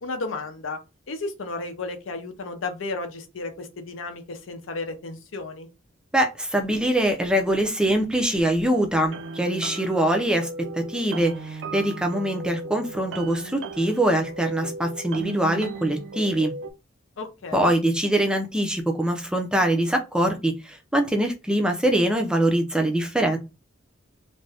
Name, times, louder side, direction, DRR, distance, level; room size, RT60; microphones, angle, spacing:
voice 1, 0.0-0.8 1.1-5.7 17.2-17.7 23.3-23.4, left 3 dB, 75° left, 0.6 m, -33 dB
voice 2, 6.1-16.5 17.5-23.4, right 1 dB, 5° right, 0.4 m, -23 dB
sound 1, 9.0-16.7, right 3 dB, 65° right, 0.4 m, -36 dB
2.6 x 2.2 x 3.3 m
head